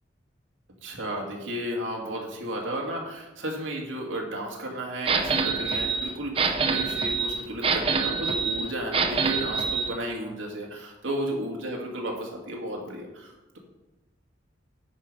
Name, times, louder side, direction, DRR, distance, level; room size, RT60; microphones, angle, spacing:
voice 1, 0.8-13.6, right 1 dB, 90° right, -1 dB, 2.0 m, -33 dB
sound 1, 5.1-9.9, right 5 dB, 30° right, 0.7 m, -26 dB
9.7 x 5.0 x 5.2 m, 1.0 s
head